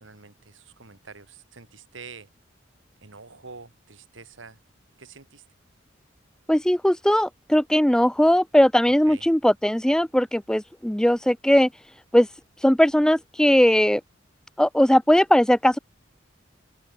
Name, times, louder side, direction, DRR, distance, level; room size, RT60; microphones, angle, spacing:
voice 1, 0.0-2.3 3.0-4.6 5.0-5.4 9.1-9.3, right 4 dB, 80° right, 2.2 m, -46 dB
voice 2, 6.5-11.7 12.1-12.3 12.6-14.0 14.6-15.8, equal, 5° left, 0.4 m, -19 dB
open air
head